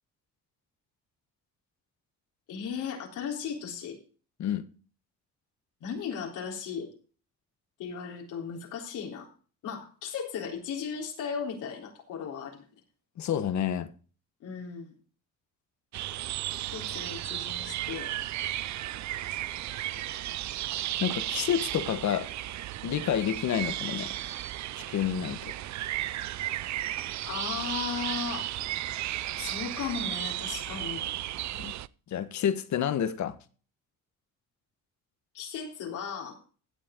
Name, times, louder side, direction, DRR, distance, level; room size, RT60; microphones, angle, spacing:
voice 1, 2.5-4.0 5.8-6.9 7.8-9.3 9.6-12.6 14.4-14.9 16.7-18.1 27.2-28.5 29.4-31.1 35.3-36.4, left 6 dB, 85° left, 3.6 m, -36 dB
voice 2, 13.2-13.9 21.0-22.3 22.8-24.1 24.8-25.4 31.5-31.8 32.1-33.4, left 9 dB, 70° left, 1.3 m, -29 dB
sound 1, 15.9-31.9, right 14 dB, 65° right, 0.6 m, -34 dB
16.0 x 7.7 x 3.8 m
cardioid pair, 90°, 30 cm